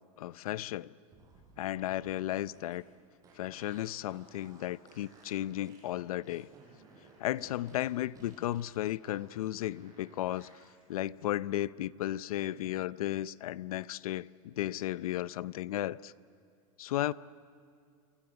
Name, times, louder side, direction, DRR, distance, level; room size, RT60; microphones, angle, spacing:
voice 1, 0.2-0.9 1.6-2.8 3.4-6.5 7.2-10.5 10.9-16.1 16.8-17.1, left 14 dB, 85° left, 18 dB, 0.6 m, -34 dB
sound 1, 1.1-10.7, right 3 dB, 20° right, 6.7 m, -59 dB
27.0 x 24.5 x 8.0 m, 2.3 s
supercardioid pair, 155°, 18 cm